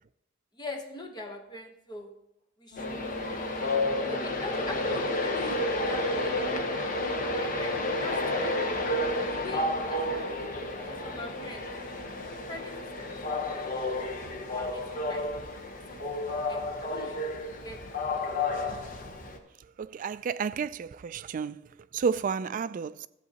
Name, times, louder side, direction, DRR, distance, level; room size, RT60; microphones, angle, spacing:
voice 1, 0.5-2.1 2.6-3.0 4.0-6.7 7.2-8.7 9.3-10.3 10.8-11.7 12.5-13.2 14.0-14.1 14.5-15.3 15.7-17.2 17.6-18.5, left 2 dB, 20° left, 1.0 m, -43 dB
sound 1, 2.7-12.4, left 2 dB, 75° left, 4.0 m, -50 dB
Train, 2.8-19.4, left 2 dB, 45° left, 1.1 m, -31 dB
voice 2, 19.8-23.1, right 6 dB, 40° right, 0.3 m, -31 dB
14.0 x 8.0 x 2.9 m
head